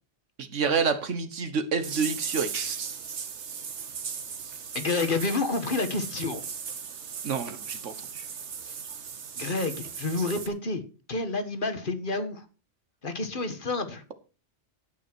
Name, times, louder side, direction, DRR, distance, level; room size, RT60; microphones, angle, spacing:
voice 1, 0.4-2.8 7.2-8.3, right 5 dB, 90° right, 11 dB, 1.6 m, -28 dB
sound 1, 1.8-10.5, right 6 dB, 70° right, 1.4 m, -37 dB
voice 2, 4.7-6.4 8.6-8.7 9.4-10.8 11.1-12.4 13.0-14.0, left 3 dB, 45° left, 9 dB, 1.5 m, -29 dB
16.5 x 6.1 x 4.6 m, 0.35 s
omnidirectional pair, 1.2 m